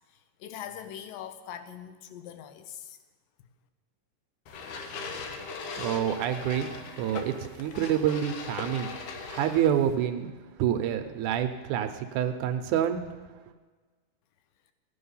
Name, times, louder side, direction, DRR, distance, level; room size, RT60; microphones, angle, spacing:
voice 1, 0.1-3.0 3.4-3.5, left 9 dB, 85° left, 10 dB, 2.5 m, -42 dB
sound 1, 4.5-10.0, left 4 dB, 70° left, 2.4 m, -39 dB
voice 2, 5.8-6.7 7.0-8.9 9.3-10.3 10.6-13.0, right 10 dB, 75° right, 7 dB, 2.0 m, -27 dB
16.0 x 9.5 x 5.6 m, 1.3 s
omnidirectional pair, 3.9 m